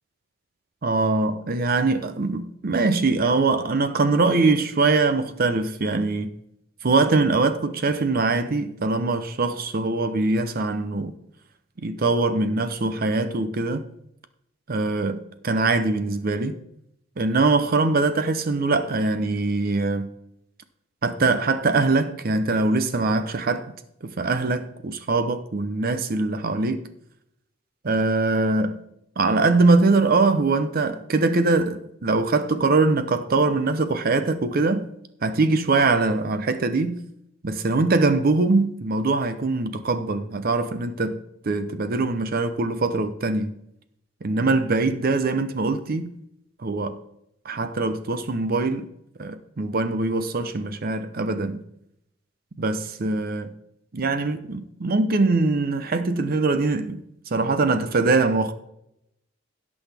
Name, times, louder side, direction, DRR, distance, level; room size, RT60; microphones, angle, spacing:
voice 1, 0.8-6.3 6.8-11.1 11.8-13.8 14.7-16.6 17.2-20.1 21.0-23.7 24.0-26.8 27.8-28.8 29.2-34.9 35.2-37.0 37.4-43.6 44.2-46.1 46.6-47.0 47.4-48.9 49.2-51.6 52.6-53.5 53.9-57.0 57.3-58.5, right 3 dB, 50° right, 0.7 m, -22 dB
17.0 x 6.2 x 3.4 m
head